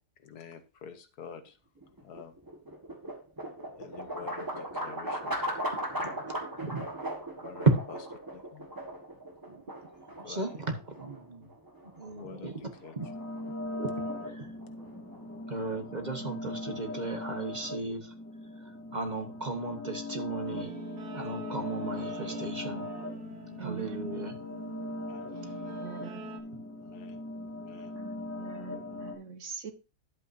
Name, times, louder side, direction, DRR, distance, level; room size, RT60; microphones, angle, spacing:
voice 1, 0.2-1.6 2.0-2.3 3.8-5.4 6.0-6.2 7.4-7.7 8.3-8.7 10.2-10.4 12.2-12.5 12.8-12.9 24.9-25.3 26.8-27.2 27.5-27.9 28.4-28.5, left 7 dB, 75° left, 9 dB, 1.6 m, -48 dB
sound 1, 1.8-15.9, equal, 15° right, 1.5 m, -39 dB
voice 2, 5.9-6.9 7.6-7.8 9.4-9.6 10.2-11.5 11.8-13.1 13.8-13.9 14.2-14.5 15.5-18.1 18.4-20.7 21.1-22.8 23.6-24.4, right 3 dB, 30° right, 5 dB, 1.1 m, -34 dB
sound 2, 13.0-29.1, left 2 dB, 10° left, 1.5 m, -40 dB
Guitar, 20.4-26.4, right 6 dB, 90° right, 2.0 m, -46 dB
voice 3, 23.6-24.0 25.8-26.2 28.0-29.7, right 5 dB, 55° right, 9 dB, 1.2 m, -43 dB
11.0 x 8.3 x 2.7 m, 0.31 s
omnidirectional pair, 1.7 m